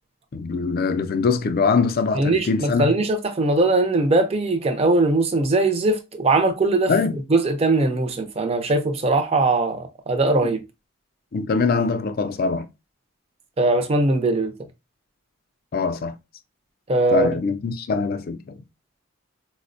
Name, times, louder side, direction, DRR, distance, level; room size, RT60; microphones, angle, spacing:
voice 1, 0.3-2.9 6.9-7.2 10.4-10.5 11.3-12.7 15.7-16.1 17.1-18.6, left 4 dB, 45° left, 0.4 m, -23 dB
voice 2, 2.1-6.9 7.3-10.6 13.6-14.5 16.9-17.3, right 2 dB, 30° right, 0.4 m, -20 dB
4.2 x 2.1 x 2.5 m
head